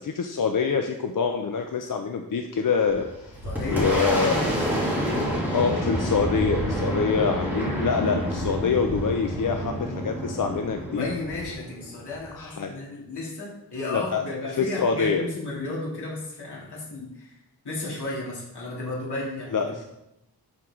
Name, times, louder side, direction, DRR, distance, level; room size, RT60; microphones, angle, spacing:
voice 1, 0.0-3.4 3.7-4.3 5.5-11.1 12.4-12.7 13.9-14.2 14.6-15.2 19.5-19.8, left 5 dB, 50° left, 5 dB, 0.6 m, -25 dB
Boom, 2.9-12.3, equal, 5° right, 2.8 m, -28 dB
voice 2, 3.4-3.9 4.2-4.5 10.9-17.4 17.6-19.8, left 2 dB, 70° left, -6 dB, 3.0 m, -33 dB
12.0 x 4.6 x 3.7 m, 0.89 s
wide cardioid pair, 135°, 42 cm